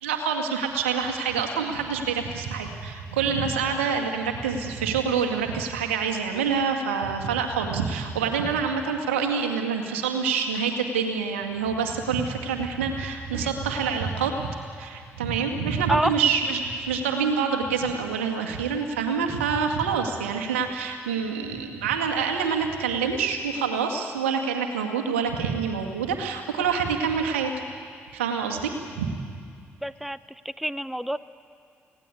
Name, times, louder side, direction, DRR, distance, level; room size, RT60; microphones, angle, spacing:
voice 1, 0.0-27.5 28.1-29.1, right 6 dB, 85° right, 3 dB, 2.1 m, -26 dB
voice 2, 29.8-30.2 30.4-31.2, right 1 dB, ahead, 15 dB, 0.9 m, -27 dB
29.5 x 18.0 x 8.5 m, 2.2 s
hypercardioid pair, 40°, 7 cm